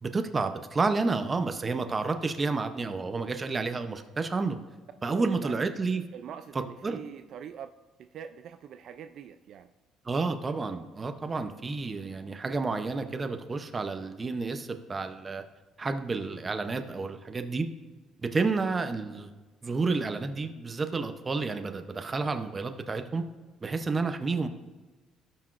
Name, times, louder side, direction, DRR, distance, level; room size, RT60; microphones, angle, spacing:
voice 1, 0.0-4.6 5.0-6.1 6.5-7.0 10.0-15.4 15.8-17.7 18.2-19.3 19.6-23.2 23.6-24.5, right 4 dB, 20° right, 7 dB, 0.6 m, -30 dB
voice 2, 5.1-5.7 6.1-7.7 8.0-9.7, right 8 dB, 55° right, 9 dB, 0.3 m, -43 dB
17.0 x 5.9 x 2.5 m, 1.3 s
cardioid pair, 140°, 0 cm